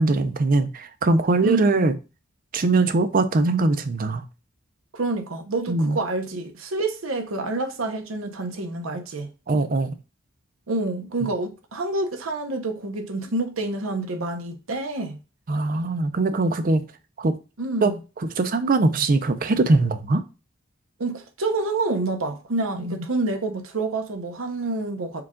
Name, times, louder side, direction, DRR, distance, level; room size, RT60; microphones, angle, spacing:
voice 1, 0.0-1.9 2.5-4.2 5.7-6.0 9.5-10.0 15.5-16.8 17.2-17.4 17.8-17.9 18.4-20.2 22.7-23.0, right 3 dB, 45° right, 0.5 m, -21 dB
voice 2, 1.4-1.8 4.9-9.3 10.7-15.2 17.6-18.0 21.0-25.2, right 2 dB, 85° right, 0.8 m, -28 dB
4.6 x 2.4 x 3.6 m
head